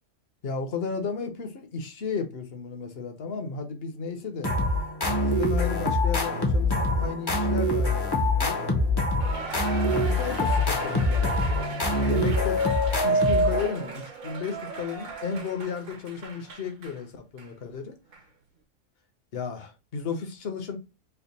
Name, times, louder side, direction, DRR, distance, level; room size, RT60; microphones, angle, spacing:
voice 1, 0.4-4.5 5.0-8.6 9.9-12.6 13.0-17.9 19.3-20.8, left 5 dB, 55° left, 0.9 m, -34 dB
sound 1, 4.4-13.9, left 1 dB, 25° left, 0.5 m, -24 dB
Cheering, 9.2-17.0 17.4-17.5 18.1-18.2, right 3 dB, 75° right, 1.3 m, -38 dB
3.4 x 2.2 x 3.9 m
omnidirectional pair, 1.4 m